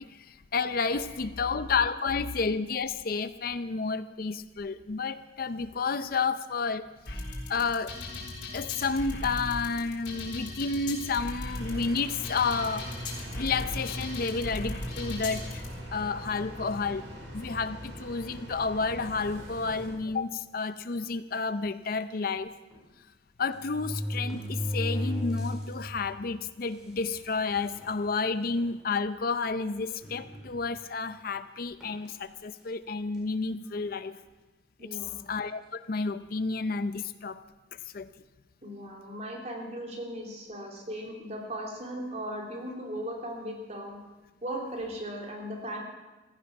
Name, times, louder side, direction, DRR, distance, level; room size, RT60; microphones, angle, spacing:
voice 1, 0.0-6.9 7.5-8.0 8.5-13.0 13.4-15.6 15.9-17.1 17.3-22.5 23.4-34.2 34.8-34.9 35.3-37.4 37.7-38.1, left 4 dB, 50° left, 12 dB, 0.6 m, -31 dB
sound 1, 7.1-15.7, left 2 dB, 70° left, 3.8 m, -38 dB
sound 2, 11.5-19.9, equal, 90° right, 4.4 m, -42 dB
sound 3, 19.9-20.1 20.9-21.0 21.3-21.4 22.7-22.8 23.5-25.7 26.2-26.3 27.1-27.2 27.6-28.0 28.6-28.7 30.0-30.8 31.8-32.1, left 1 dB, 5° right, 4.4 m, -34 dB
voice 2, 34.8-35.2 38.6-44.0 44.4-45.8, equal, 40° right, 0 dB, 3.2 m, -37 dB
15.5 x 14.5 x 6.0 m, 1.1 s
head